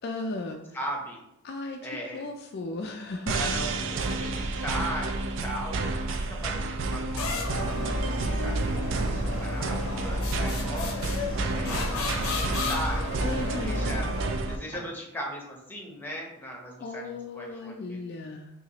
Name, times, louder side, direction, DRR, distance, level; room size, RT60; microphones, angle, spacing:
voice 1, 0.0-0.6 1.4-1.8 2.1-3.3 13.2-13.8 16.8-18.5, left 2 dB, 50° left, 3 dB, 0.3 m, -35 dB
voice 2, 0.7-1.2 1.8-2.3 3.3-7.7 8.0-13.2 13.4-14.1 14.5-18.0, equal, 10° left, -1 dB, 0.7 m, -38 dB
sound 1, 3.3-14.6, right 3 dB, 60° right, 0.4 m, -30 dB
sound 2, 7.2-14.6, left 2 dB, 80° left, 0.7 m, -32 dB
Walk footsteps, 10.7-10.8 11.3-11.4 12.0-12.1 12.6-12.9 13.3-13.5 13.9-14.2 14.7-14.9, right 1 dB, 30° right, 1.5 m, -46 dB
5.7 x 2.4 x 2.9 m, 0.86 s
head